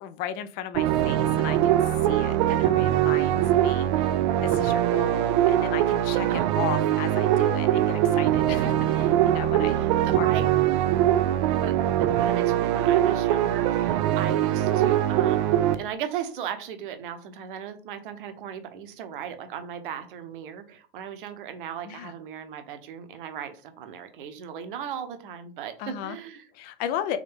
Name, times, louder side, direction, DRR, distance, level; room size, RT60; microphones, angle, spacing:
voice 1, 0.0-9.8 10.1-10.6 21.9-22.1 25.8-26.2 26.5-27.2, left 10 dB, 30° left, 12 dB, 0.4 m, -35 dB
sound 1, 0.7-15.7, right 12 dB, 30° right, 0.4 m, -22 dB
voice 2, 9.8-10.5 11.5-15.5 15.7-26.5, right 8 dB, 50° right, 9 dB, 0.9 m, -37 dB
3.7 x 3.7 x 3.5 m, 0.39 s
figure-of-eight pair, 95°, 32 cm